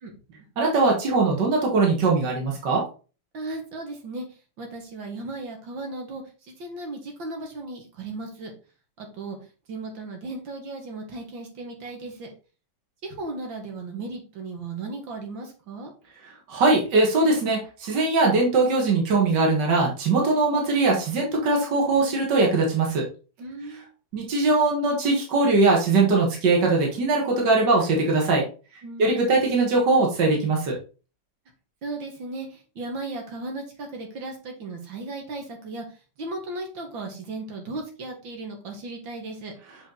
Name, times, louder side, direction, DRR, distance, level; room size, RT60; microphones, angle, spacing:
voice 1, 0.0-0.4 3.3-4.2 4.6-8.5 9.0-9.4 9.7-12.3 13.0-15.9 23.4-23.8 28.8-29.3 31.8-32.5 32.8-35.8 36.2-39.5, right 2 dB, 85° right, 2 dB, 2.4 m, -36 dB
voice 2, 0.6-2.8 16.5-23.1 24.1-28.4 29.0-30.7, right 3 dB, 65° right, -1 dB, 2.2 m, -21 dB
6.4 x 4.9 x 3.9 m, 0.35 s
omnidirectional pair, 2.0 m